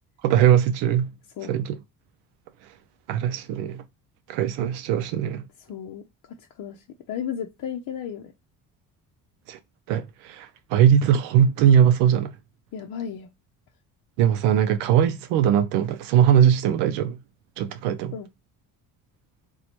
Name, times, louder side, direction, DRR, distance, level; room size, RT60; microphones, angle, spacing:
voice 1, 0.2-1.1 1.5-1.8 3.1-3.8 4.3-5.5 9.5-9.6 9.9-12.3 14.2-17.2 17.6-18.2, right 9 dB, 85° right, 0.5 m, -20 dB
voice 2, 5.7-6.1 6.4-8.2 12.7-13.3 18.1-18.3, left 8 dB, 50° left, 0.6 m, -34 dB
2.9 x 2.3 x 4.2 m
supercardioid pair, 70°, 41 cm